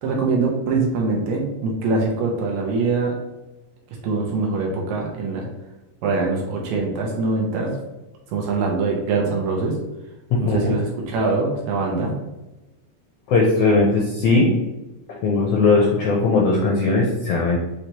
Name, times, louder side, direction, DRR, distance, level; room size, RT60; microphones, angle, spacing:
voice 1, 0.0-3.2 4.0-5.5 6.0-7.7 8.3-9.8 10.4-12.1, right 3 dB, 75° right, 0 dB, 2.1 m, -23 dB
voice 2, 10.3-10.7 13.3-14.5 15.2-17.6, left 3 dB, 80° left, -2 dB, 1.4 m, -18 dB
5.6 x 3.2 x 2.9 m, 1.0 s
omnidirectional pair, 3.6 m